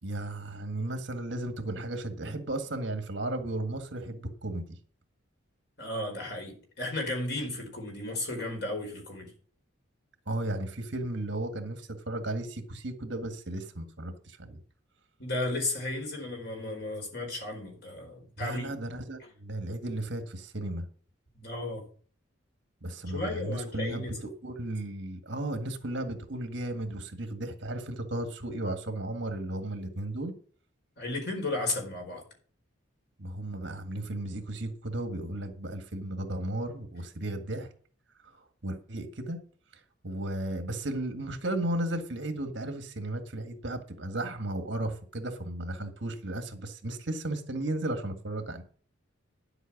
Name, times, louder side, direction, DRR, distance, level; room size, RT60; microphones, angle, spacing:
voice 1, 0.0-4.6 10.3-14.6 18.4-20.9 22.8-30.3 33.2-37.7 38.6-39.4 40.0-48.6, right 1 dB, 55° right, 1.8 m, -34 dB
voice 2, 5.8-9.3 15.2-18.7 21.3-21.9 23.1-24.2 31.0-32.2, left 2 dB, 55° left, 4.7 m, -34 dB
11.0 x 8.1 x 6.0 m
head